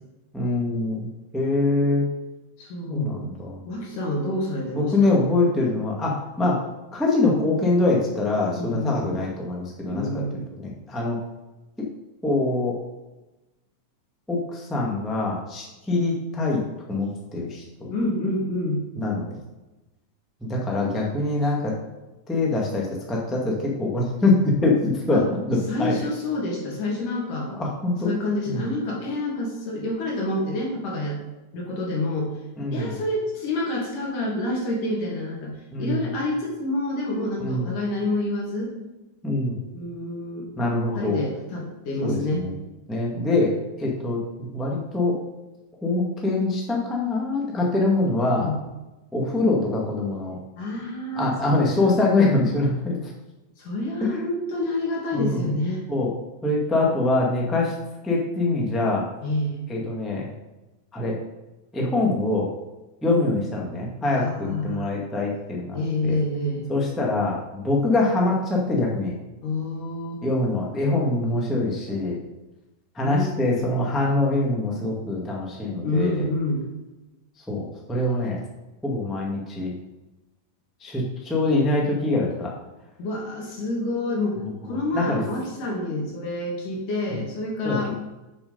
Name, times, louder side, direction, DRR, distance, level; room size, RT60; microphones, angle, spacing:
voice 1, 0.3-1.1 1.3-2.1 2.9-3.6 4.7-6.6 6.9-10.1 10.6-11.2 12.2-12.8 14.3-16.6 16.9-17.9 19.0-19.4 20.4-21.7 22.3-25.9 27.5-28.1 28.5-28.6 32.6-32.9 35.7-36.1 37.4-37.7 39.2-39.6 40.6-41.2 42.0-42.6 42.9-43.5 43.8-45.1 45.8-48.5 49.1-50.4 51.1-53.1 55.1-55.4 55.9-56.1 56.4-57.7 58.0-59.0 59.7-60.3 60.9-61.1 61.7-62.5 63.0-66.2 66.7-69.1 70.2-72.2 72.9-76.3 77.5-78.4 78.8-79.7 80.8-82.5 84.9-85.2 87.6-87.9, left 2 dB, ahead, -3 dB, 0.9 m, -24 dB
voice 2, 2.6-3.2 3.7-5.1 8.6-9.1 9.9-10.5 17.9-18.8 25.1-25.2 25.7-27.5 28.0-31.2 31.5-32.3 32.7-35.5 35.8-38.7 39.6-40.5 41.0-42.4 48.3-48.6 50.6-51.9 53.6-55.8 59.2-59.6 64.2-65.0 65.7-66.7 69.4-70.2 73.0-73.3 73.6-73.7 75.8-76.7 83.0-87.9, left 1 dB, 85° left, -2 dB, 3.8 m, -28 dB
7.5 x 7.0 x 5.4 m, 1.0 s
omnidirectional pair, 3.5 m